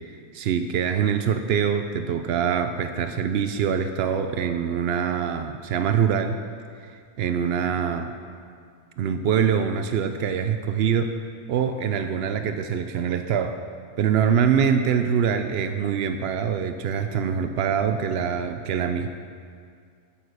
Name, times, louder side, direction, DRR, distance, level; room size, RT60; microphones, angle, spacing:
voice 1, 0.0-6.4 6.8-8.1 9.0-11.1 11.5-13.6 14.0-19.1, right 7 dB, 85° right, 8 dB, 0.5 m, -24 dB
8.8 x 8.6 x 6.5 m, 2.2 s
omnidirectional pair, 1.6 m